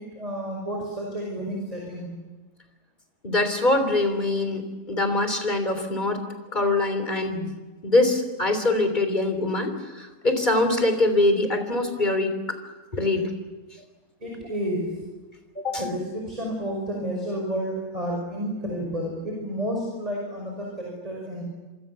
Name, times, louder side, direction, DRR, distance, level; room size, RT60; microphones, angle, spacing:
voice 1, 0.0-2.1 14.2-15.0 15.8-21.4, equal, 25° right, 0 dB, 5.8 m, -31 dB
voice 2, 3.2-6.2 6.5-7.5 7.8-12.3 12.9-13.3 14.4-14.5 15.6-15.8, left 2 dB, 30° left, 7 dB, 3.7 m, -23 dB
26.5 x 25.5 x 7.0 m, 1.2 s
omnidirectional pair, 1.6 m